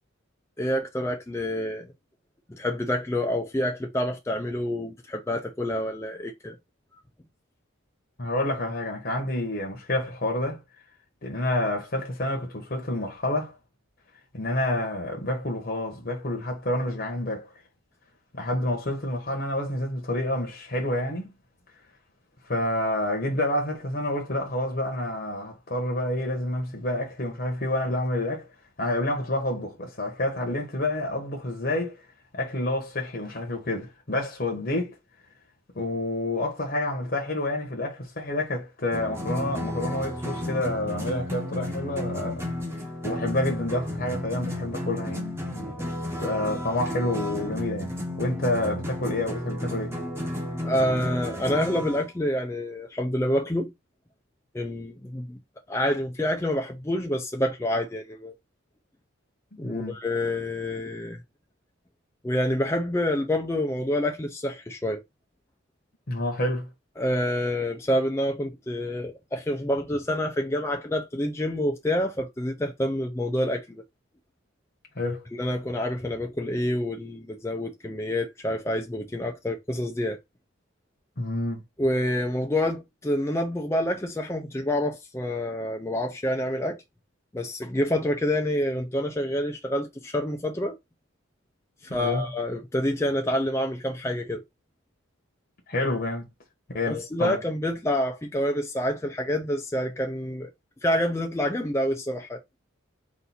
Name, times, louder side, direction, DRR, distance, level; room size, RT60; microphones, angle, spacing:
voice 1, 0.6-1.9 2.5-6.6 50.6-53.7 54.5-55.4 55.7-58.3 59.6-61.2 62.2-65.0 67.0-73.8 75.3-80.2 81.8-86.8 87.3-90.8 91.9-94.4 96.9-100.5 100.8-102.4, left 1 dB, 15° left, 0.4 m, -27 dB
voice 2, 8.2-10.6 11.2-13.5 14.3-17.5 18.3-21.3 22.5-28.5 28.8-32.0 32.3-35.0 35.8-42.5 43.0-45.9 46.1-49.9 59.6-60.0 66.1-66.7 75.0-75.2 81.2-81.6 92.0-92.2 95.7-96.2 96.7-97.4, left 1 dB, 45° left, 0.9 m, -28 dB
sound 1, 38.9-52.0, left 1 dB, 10° right, 0.9 m, -33 dB
4.1 x 2.6 x 4.0 m
head